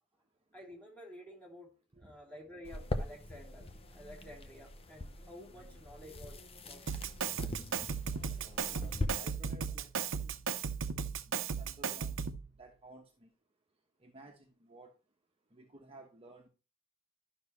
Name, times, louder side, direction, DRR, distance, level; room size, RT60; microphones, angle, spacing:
voice 1, 0.5-6.9, equal, 5° left, -2 dB, 3.3 m, -52 dB
sound 1, 2.6-9.1, left 2 dB, 30° left, 0.8 m, -42 dB
Drum kit, 6.9-12.5, right 6 dB, 65° right, 0.7 m, -36 dB
voice 2, 8.4-10.3 11.3-12.2 12.6-13.3 14.0-14.9 15.5-16.5, right 2 dB, 30° right, 2 dB, 1.1 m, -55 dB
12.0 x 6.2 x 3.1 m, 0.33 s
head